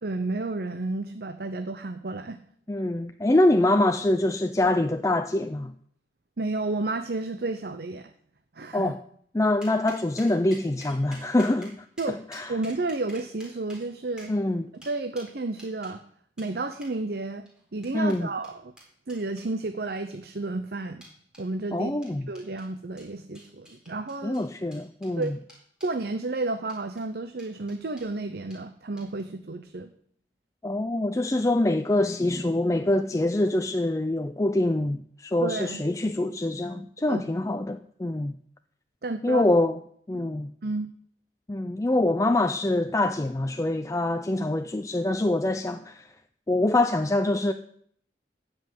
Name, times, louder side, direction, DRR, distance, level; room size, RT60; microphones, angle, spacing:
voice 1, 0.0-2.4 6.4-8.1 8.5-8.9 12.0-12.2 12.5-14.3 14.8-16.0 16.4-17.4 17.7-18.7 19.1-21.0 21.4-21.9 22.3-24.4 25.2-25.3 25.8-29.9 35.4-35.8 37.1-37.2 39.0-39.5 40.1-40.3 40.6-40.9 44.4-44.5, right 2 dB, 60° right, 0.8 m, -31 dB
voice 2, 2.7-5.7 8.7-9.0 9.3-11.8 12.1-12.5 14.3-14.7 17.9-18.3 21.7-22.3 24.2-25.3 30.6-38.3 39.2-39.8 40.1-40.5 41.5-46.1 46.5-47.5, left 1 dB, 20° left, 0.5 m, -25 dB
sound 1, 9.6-16.0 16.4-16.5 16.8-17.0 17.5-19.5 20.0-20.4 21.0-21.5 22.0-22.7 23.0-26.0 26.6-27.1 27.4-28.1 28.5-28.6 29.0-29.3, right 1 dB, 5° right, 4.3 m, -50 dB
15.5 x 5.4 x 9.4 m
head